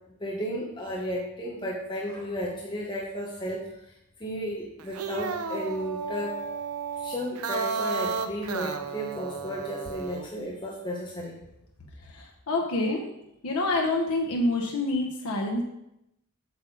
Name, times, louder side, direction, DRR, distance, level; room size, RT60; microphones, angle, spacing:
voice 1, 0.2-6.4 7.0-11.4, equal, 20° left, -3 dB, 1.0 m, -34 dB
sound 1, 4.8-10.3, right 5 dB, 80° right, 0.6 m, -33 dB
voice 2, 12.0-13.1 13.4-15.6, left 2 dB, 85° left, 0 dB, 0.9 m, -27 dB
8.0 x 6.4 x 3.8 m, 0.84 s
head